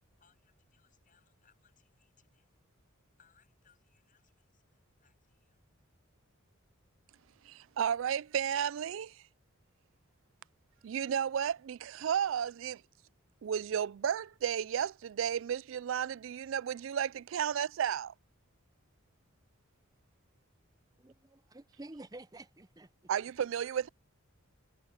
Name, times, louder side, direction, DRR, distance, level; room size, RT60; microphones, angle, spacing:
voice 1, 0.2-2.5 3.2-5.6, left 8 dB, 40° left, 8.0 m, -71 dB
voice 2, 7.4-9.2 10.8-12.8 13.4-18.1 23.1-23.9, right 8 dB, 65° right, 0.3 m, -33 dB
voice 3, 21.0-22.9, right 2 dB, 20° right, 0.6 m, -50 dB
head